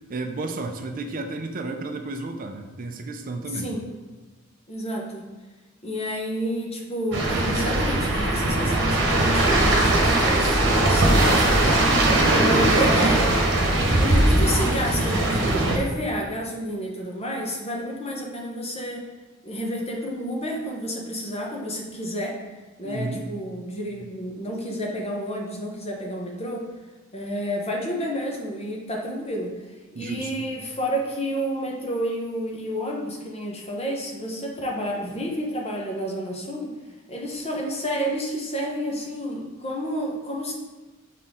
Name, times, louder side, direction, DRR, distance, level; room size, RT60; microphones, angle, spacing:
voice 1, 0.1-3.7 22.8-23.2 29.9-30.5, right 2 dB, 40° right, 5 dB, 0.5 m, -32 dB
voice 2, 3.5-3.8 4.7-5.2 5.8-11.8 12.3-13.6 13.9-19.0 19.4-22.4 22.8-26.6 27.1-29.5 29.9-36.7 37.1-40.5, equal, 30° left, -1 dB, 1.0 m, -30 dB
sound 1, 7.1-15.8, right 1 dB, 60° right, 1.2 m, -20 dB
6.4 x 4.2 x 3.7 m, 1.2 s
head